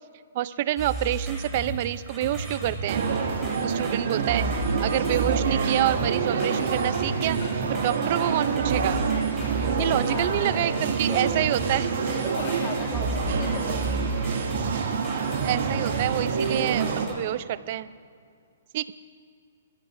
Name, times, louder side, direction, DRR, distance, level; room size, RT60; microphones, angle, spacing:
voice 1, 0.3-3.0 3.6-7.4 7.7-9.0 9.8-11.9 15.4-17.9 18.7-18.9, right 13 dB, 45° right, 15 dB, 0.5 m, -27 dB
sound 1, 0.8-17.1, right 1 dB, 5° right, 4.0 m, -34 dB
sound 2, 2.9-17.1, right 5 dB, 65° right, 2.2 m, -27 dB
Tick-tock, 5.6-13.5, left 2 dB, 60° left, 4.7 m, -45 dB
voice 2, 9.6-11.3 12.0-14.4, left 4 dB, 25° left, 3 dB, 1.6 m, -39 dB
24.5 x 15.5 x 2.6 m, 2.2 s
hypercardioid pair, 145°, 0 cm